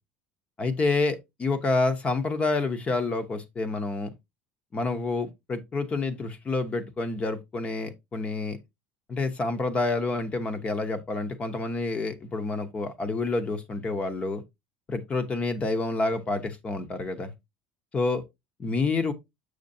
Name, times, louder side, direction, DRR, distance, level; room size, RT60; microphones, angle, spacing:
voice 1, 0.6-4.1 4.7-8.6 9.1-14.4 14.9-17.3 17.9-18.2 18.6-19.1, left 3 dB, 25° left, 0.9 m, -28 dB
6.5 x 6.5 x 2.7 m
supercardioid pair, 130°, 5 cm